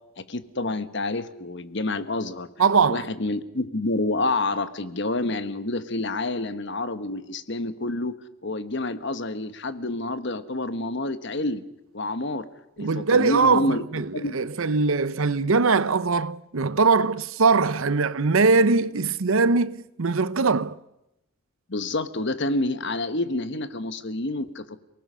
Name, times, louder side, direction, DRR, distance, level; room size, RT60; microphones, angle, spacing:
voice 1, 0.2-2.5 2.9-8.1 8.4-11.6 11.9-12.5 12.8-13.8 14.1-14.3 21.7-24.8, left 2 dB, 55° left, 1.2 m, -28 dB
voice 2, 2.6-3.1 12.8-20.8, right 4 dB, 75° right, 0.7 m, -21 dB
29.5 x 19.0 x 6.3 m
head